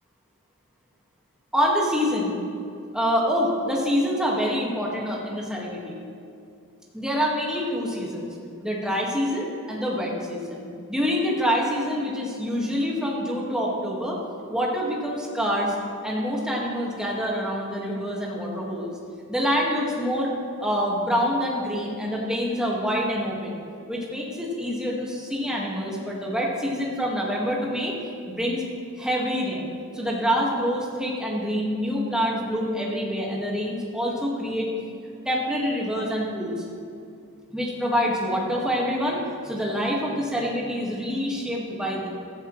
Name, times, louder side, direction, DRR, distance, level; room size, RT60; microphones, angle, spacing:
voice 1, 1.5-2.3 2.9-6.0 6.9-8.3 8.6-14.2 14.5-15.7 16.0-18.9 19.3-20.3 20.6-23.6 23.9-27.9 28.3-28.6 29.0-34.7 35.3-36.6 37.5-42.1, equal, 5° right, -3 dB, 1.9 m, -26 dB
15.0 x 13.5 x 3.3 m, 2.6 s
head